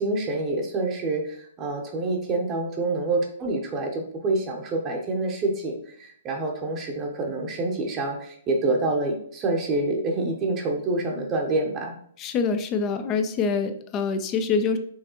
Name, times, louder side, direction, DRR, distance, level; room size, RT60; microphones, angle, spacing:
voice 1, 0.0-11.9, right 2 dB, 25° right, 2 dB, 0.9 m, -27 dB
voice 2, 12.2-14.8, left 5 dB, 25° left, 8 dB, 0.5 m, -25 dB
5.4 x 3.3 x 3.0 m, 0.63 s
hypercardioid pair, 130°, 0 cm